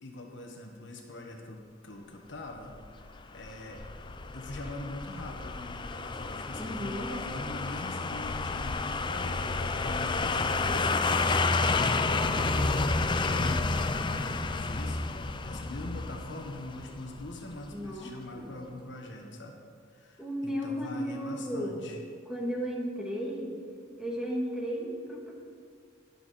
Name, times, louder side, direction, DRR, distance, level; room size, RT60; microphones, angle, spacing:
voice 1, 0.0-3.8 4.3-19.6 19.9-22.0, left 2 dB, 65° left, 2 dB, 1.4 m, -43 dB
sound 1, 2.7-17.7 18.0-18.1, left 3 dB, 25° left, 0.4 m, -30 dB
voice 2, 6.6-7.1 17.7-18.6 20.2-21.9 22.3-23.6 24.0-25.3, equal, 5° right, -3 dB, 1.9 m, -34 dB
20.0 x 6.9 x 4.3 m, 2.1 s
head